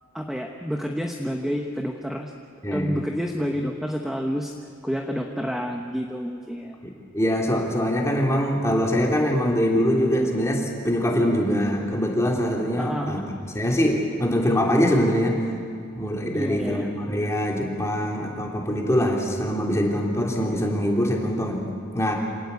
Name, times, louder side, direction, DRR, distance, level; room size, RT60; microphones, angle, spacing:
voice 1, 0.1-2.3 2.7-4.5 4.8-6.7 12.8-13.1 16.3-16.9, equal, ahead, 2 dB, 1.0 m, -29 dB
voice 2, 6.8-13.2 13.5-15.4 16.0-22.2, equal, 15° left, -1 dB, 3.3 m, -23 dB
27.0 x 18.0 x 8.4 m, 2.4 s
head